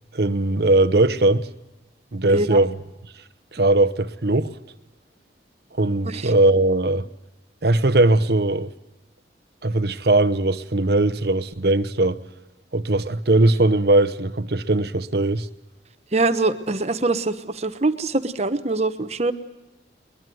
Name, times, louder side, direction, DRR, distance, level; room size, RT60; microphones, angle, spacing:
voice 1, 0.1-1.5 2.1-2.7 3.5-4.5 5.8-7.1 7.6-8.7 9.6-12.2 12.7-15.5, right 2 dB, 60° right, 0.9 m, -19 dB
voice 2, 2.3-2.6 6.0-6.3 16.1-19.3, right 3 dB, 35° right, 1.0 m, -23 dB
22.0 x 21.5 x 7.8 m
head